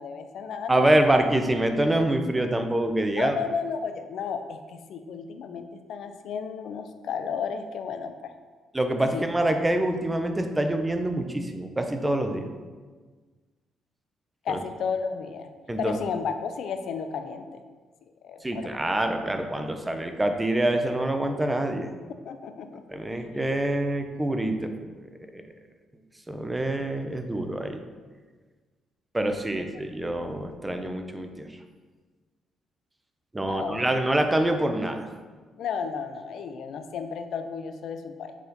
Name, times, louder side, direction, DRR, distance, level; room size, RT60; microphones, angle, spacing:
voice 1, 0.0-1.2 3.2-8.3 9.1-9.2 14.4-15.5 15.8-17.6 18.2-18.7 22.2-22.8 29.7-29.8 33.4-33.9 35.6-38.3, left 6 dB, 70° left, 8 dB, 0.5 m, -33 dB
voice 2, 0.7-3.3 8.7-12.5 14.5-14.6 15.7-16.0 18.4-21.9 22.9-24.7 25.3-25.4 26.3-27.8 29.1-31.5 33.3-35.1, right 1 dB, 15° right, 6 dB, 0.7 m, -25 dB
7.4 x 4.3 x 4.0 m, 1.4 s
cardioid pair, 90°, 0 cm